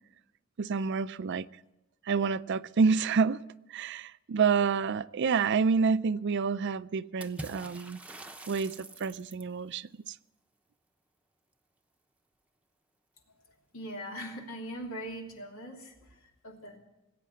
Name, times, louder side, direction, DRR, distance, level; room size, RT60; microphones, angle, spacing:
voice 1, 0.6-1.5 2.1-3.4 3.7-8.0 8.5-10.2, right 5 dB, 60° right, 0.4 m, -28 dB
Water / Splash splatter, 7.2-9.6, right 2 dB, 5° right, 0.8 m, -45 dB
voice 2, 13.7-16.8, equal, 85° left, 3.0 m, -41 dB
19.0 x 8.6 x 8.2 m
head